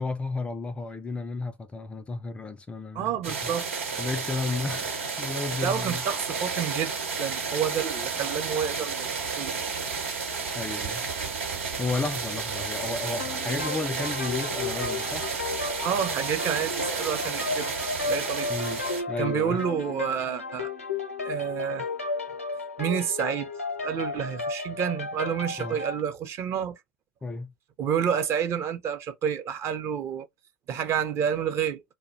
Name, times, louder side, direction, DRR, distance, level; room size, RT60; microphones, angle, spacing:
voice 1, 0.0-3.5 4.0-6.0 10.5-11.0 11.8-15.3 18.5-18.8 19.1-19.6 25.6-25.8 27.2-27.5, left 3 dB, 15° left, 0.3 m, -33 dB
voice 2, 2.9-3.7 5.6-6.9 7.2-9.1 9.4-9.8 15.8-17.7 18.0-18.5 19.2-20.7 21.2-21.9 22.8-23.5 23.8-26.8 27.8-30.3 30.7-31.8, right 8 dB, 40° right, 0.6 m, -29 dB
sound 1, 3.2-19.0, right 5 dB, 75° right, 1.0 m, -32 dB
sound 2, 13.2-26.0, left 3 dB, 90° left, 0.6 m, -34 dB
2.4 x 2.1 x 3.9 m
figure-of-eight pair, 80°, 7 cm